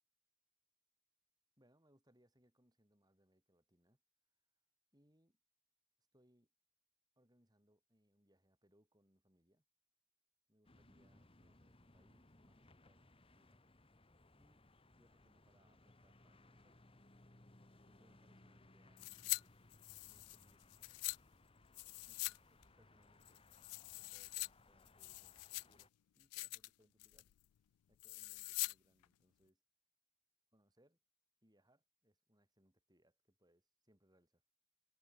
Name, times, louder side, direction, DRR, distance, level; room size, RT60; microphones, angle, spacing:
voice 1, 1.6-4.0 4.9-5.4 6.1-6.5 7.2-9.6 10.5-13.6 14.4-16.8 17.8-19.1 20.0-20.6 22.0-23.4 24.0-27.3 27.9-29.6 30.5-31.0 31.4-34.4, equal, 15° right, 6.9 m, -75 dB
City ambience light traffic man running by, 10.6-25.9, left 2 dB, 25° left, 1.4 m, -66 dB
sound 1, 19.0-19.4 19.7-21.2 21.7-22.4 22.6-22.7 23.2-24.5 24.9-25.8 26.2-26.7 27.0-27.3 28.0-28.7 29.0-29.1, left 24 dB, 90° left, 0.3 m, -44 dB
head